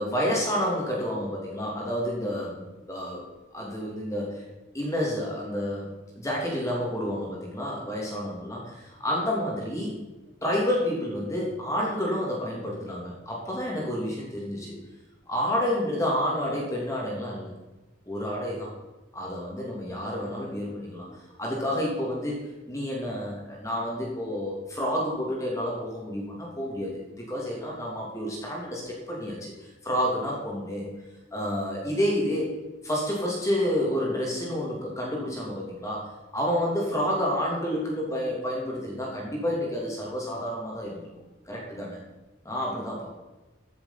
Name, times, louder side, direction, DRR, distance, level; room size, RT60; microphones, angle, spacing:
voice 1, 0.0-3.2 3.5-4.4 4.7-5.9 6.1-10.0 10.4-14.8 15.3-17.5 18.1-18.7 19.1-21.1 21.4-30.8 31.3-32.5 32.8-36.0 36.3-41.1 41.5-42.0 42.4-43.1, equal, 15° left, -3 dB, 2.9 m, -29 dB
15.0 x 7.2 x 5.9 m, 1.1 s
head